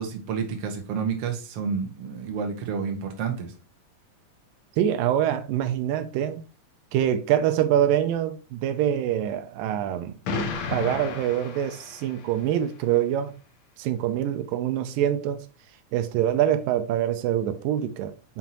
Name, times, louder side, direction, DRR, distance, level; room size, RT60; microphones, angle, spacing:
voice 1, 0.0-3.5, right 6 dB, 55° right, 2.0 m, -30 dB
voice 2, 4.8-6.4 6.9-10.2 10.7-13.3 13.8-15.5 15.9-18.4, right 10 dB, 85° right, 2.3 m, -25 dB
Explosion, 10.2-12.4, left 4 dB, 90° left, 1.1 m, -32 dB
6.0 x 5.5 x 2.9 m
omnidirectional pair, 3.9 m